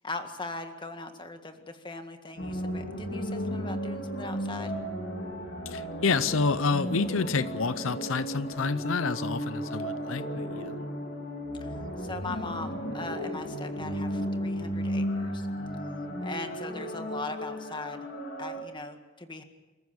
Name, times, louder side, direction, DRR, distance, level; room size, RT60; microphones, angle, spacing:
voice 1, 0.0-4.8 11.6-15.5 16.2-18.1 18.4-19.4, left 3 dB, 25° left, 7 dB, 1.8 m, -40 dB
sound 1, 2.4-18.6, equal, 55° left, 2.9 m, -34 dB
voice 2, 5.7-10.7, left 4 dB, 85° left, 14 dB, 0.7 m, -29 dB
27.5 x 14.5 x 8.5 m, 1.2 s
head